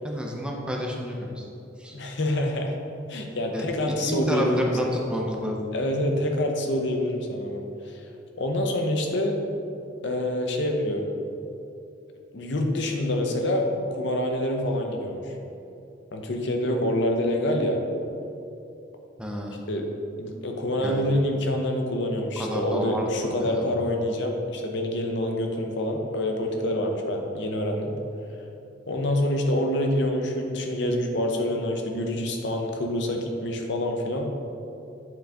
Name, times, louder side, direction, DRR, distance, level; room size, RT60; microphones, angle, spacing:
voice 1, 0.0-1.5 1.8-2.0 3.5-5.6 19.2-19.6 20.8-21.0 22.4-23.6, equal, 5° right, -1 dB, 0.5 m, -30 dB
voice 2, 1.9-2.8 3.1-4.7 5.7-8.0 8.4-9.4 10.0-11.0 12.3-15.3 16.1-17.8 19.7-19.8 20.2-27.9 28.9-34.3, left 1 dB, 65° left, 3 dB, 0.7 m, -26 dB
7.5 x 3.8 x 3.4 m, 2.7 s
head